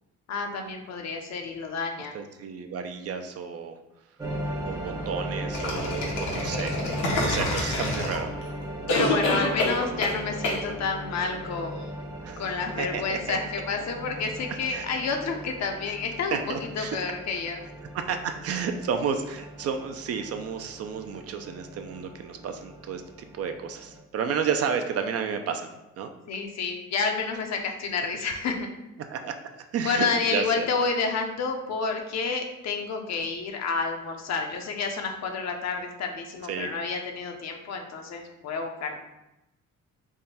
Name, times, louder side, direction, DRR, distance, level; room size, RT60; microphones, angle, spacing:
voice 1, 0.3-2.1 8.9-11.9 12.4-17.6 26.3-28.7 29.8-39.0, left 4 dB, 60° left, 4 dB, 0.6 m, -30 dB
voice 2, 2.1-3.7 4.6-6.8 7.2-8.3 12.2-12.4 12.8-13.4 14.7-14.9 16.3-17.0 17.9-23.0 23.3-25.7 26.0-26.1 29.1-30.7 36.5-36.7, right 6 dB, 55° right, 7 dB, 0.4 m, -31 dB
sound 1, 4.2-24.0, right 1 dB, 15° right, 0.6 m, -38 dB
sound 2, 5.5-8.4 8.9-10.2 10.4-10.6, left 1 dB, 85° left, 0.9 m, -27 dB
3.6 x 2.2 x 4.1 m, 0.94 s
cardioid pair, 90°, 30 cm